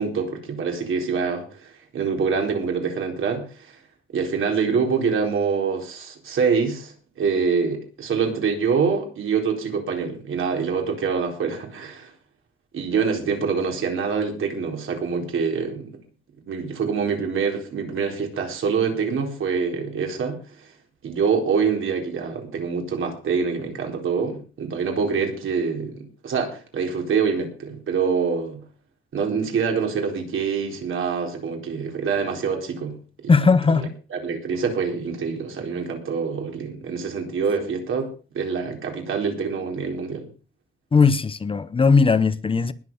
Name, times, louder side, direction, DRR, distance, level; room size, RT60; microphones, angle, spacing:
voice 1, 0.0-3.7 4.1-12.1 12.7-15.9 16.5-20.4 21.0-28.6 29.1-33.0 33.2-38.1 38.3-40.3, right 5 dB, 75° right, 4.3 m, -25 dB
voice 2, 33.3-33.9 40.9-42.7, left 4 dB, 25° left, 0.7 m, -18 dB
20.0 x 7.5 x 5.6 m
wide cardioid pair, 175°, 21 cm